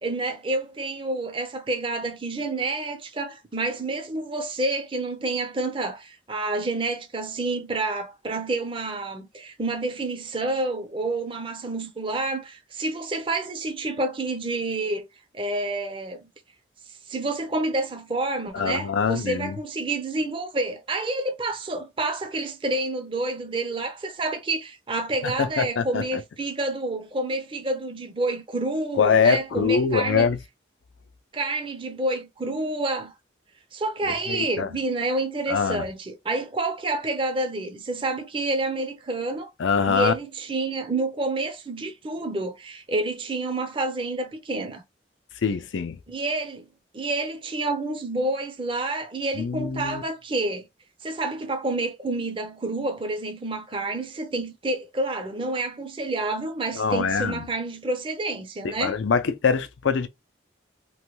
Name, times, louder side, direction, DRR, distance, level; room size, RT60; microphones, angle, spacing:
voice 1, 0.0-15.1 15.3-16.3 17.1-30.3 31.3-33.1 33.7-39.5 39.9-44.8 46.1-46.7 46.9-50.7 51.0-59.0, right 2 dB, 30° right, 0.5 m, -29 dB
voice 2, 18.5-19.6 25.2-26.0 29.0-30.4 34.3-34.7 35.5-35.8 39.6-40.1 45.4-46.0 49.3-50.0 56.8-57.4 58.6-60.1, left 5 dB, 90° left, 0.4 m, -23 dB
3.1 x 2.2 x 3.0 m
head